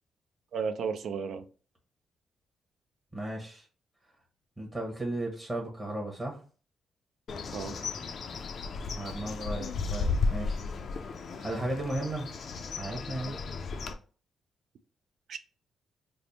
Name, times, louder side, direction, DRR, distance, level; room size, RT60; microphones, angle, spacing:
voice 1, 0.5-1.5 7.5-7.8 15.3-15.4, right 6 dB, 65° right, 10 dB, 0.4 m, -33 dB
voice 2, 3.1-3.6 4.6-6.4 8.9-10.6 11.4-12.3 12.7-13.4, right 1 dB, 15° right, -2 dB, 0.9 m, -35 dB
Bird, 7.3-13.9, left 4 dB, 50° left, 0.4 m, -34 dB
3.3 x 2.0 x 4.0 m, 0.39 s
cardioid pair, 140°, 0 cm